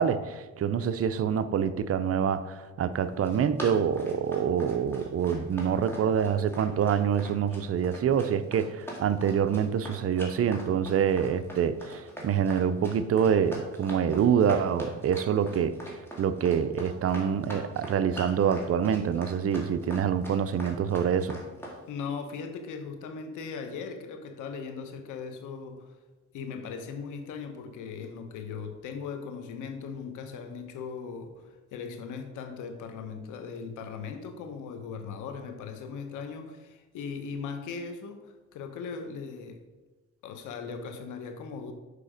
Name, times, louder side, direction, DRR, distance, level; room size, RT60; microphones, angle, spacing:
voice 1, 0.0-21.4, right 8 dB, 50° right, 12 dB, 0.5 m, -26 dB
Run, 3.0-21.8, right 1 dB, 10° left, 2.1 m, -42 dB
voice 2, 21.9-26.0 26.3-39.6 40.2-41.7, left 5 dB, 90° left, 7 dB, 1.0 m, -39 dB
6.8 x 4.9 x 5.1 m, 1.2 s
cardioid pair, 90°, 30 cm